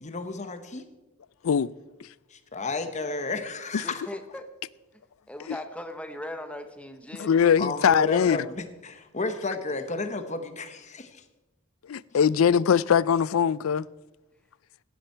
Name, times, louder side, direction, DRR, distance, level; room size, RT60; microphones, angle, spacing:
voice 1, 0.0-0.9 2.3-4.0 7.6-11.2, left 3 dB, 35° left, 1.1 m, -32 dB
voice 2, 3.8-4.5 5.3-7.3, left 1 dB, 5° left, 1.0 m, -38 dB
voice 3, 7.2-8.4 11.9-13.9, left 7 dB, 80° left, 0.4 m, -21 dB
17.0 x 10.0 x 4.5 m
head